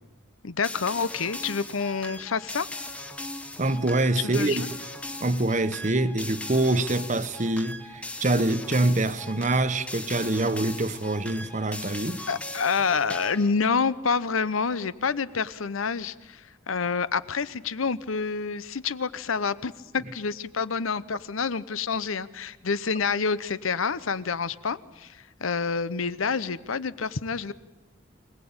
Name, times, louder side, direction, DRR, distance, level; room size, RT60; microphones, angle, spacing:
voice 1, 0.4-2.7 4.2-4.7 12.3-16.4 16.7-27.5, left 5 dB, 90° left, 0.8 m, -28 dB
sound 1, 0.6-13.5, left 1 dB, 5° left, 0.9 m, -39 dB
voice 2, 3.6-4.6 5.2-12.2, right 2 dB, 35° right, 1.0 m, -25 dB
25.0 x 18.0 x 8.8 m
head